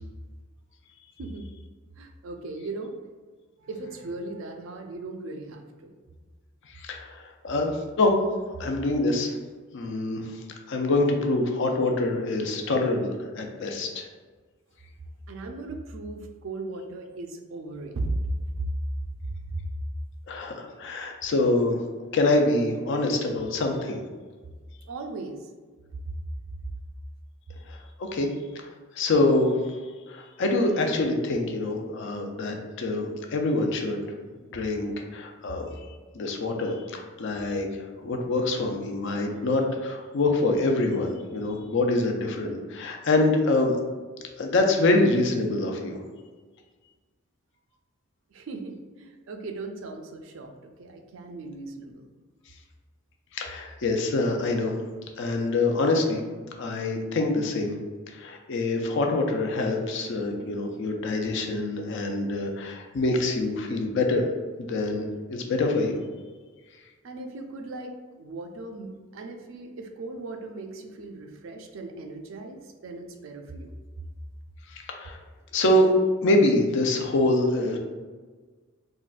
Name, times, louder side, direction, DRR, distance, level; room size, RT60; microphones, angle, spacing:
voice 1, 2.0-2.9 3.6-6.0 15.3-18.3 18.6-18.7 19.4-19.7 24.8-25.5 26.1-26.2 43.1-43.2 48.3-52.1 67.0-73.7, right 2 dB, 65° right, 4 dB, 0.4 m, -37 dB
voice 2, 6.7-8.1 8.6-9.4 9.7-10.3 10.7-14.1 20.3-21.8 22.1-24.0 27.7-28.3 28.6-29.8 30.1-34.0 34.5-35.8 36.1-43.8 44.4-46.0 53.3-54.7 55.2-56.2 56.6-57.7 58.1-64.2 64.6-66.0 74.7-75.2 75.5-75.9 76.2-77.8, left 2 dB, 60° left, 3 dB, 0.4 m, -25 dB
3.7 x 2.1 x 2.4 m, 1.4 s
head